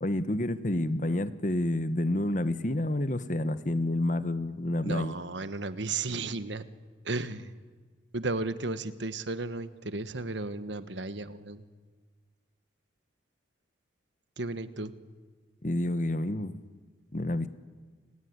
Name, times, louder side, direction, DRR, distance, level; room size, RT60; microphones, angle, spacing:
voice 1, 0.0-5.1 15.6-16.6 17.1-17.5, left 1 dB, 40° left, 13 dB, 1.1 m, -29 dB
voice 2, 4.8-6.7 7.0-7.5 8.1-11.6 14.4-14.9, right 3 dB, 75° right, 13 dB, 1.3 m, -34 dB
29.5 x 19.5 x 9.6 m, 1.5 s
head